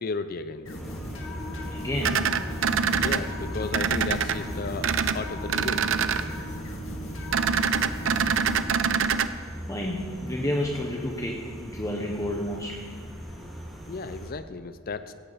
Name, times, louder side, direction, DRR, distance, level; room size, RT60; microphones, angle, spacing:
voice 1, 0.0-0.8 3.0-5.9 13.9-15.1, left 4 dB, 45° left, 12 dB, 0.5 m, -34 dB
sound 1, 0.6-8.7, left 1 dB, 90° left, 2.3 m, -37 dB
sound 2, 0.7-14.3, equal, ahead, 3.5 m, -39 dB
voice 2, 1.7-2.3 9.7-12.9, left 1 dB, 15° left, 0 dB, 1.0 m, -30 dB
sound 3, 2.0-3.2 3.7-4.3 4.8-5.2 5.5-6.2 7.3-9.3, right 6 dB, 70° right, 0.6 m, -24 dB
17.0 x 17.0 x 4.1 m, 2.1 s
head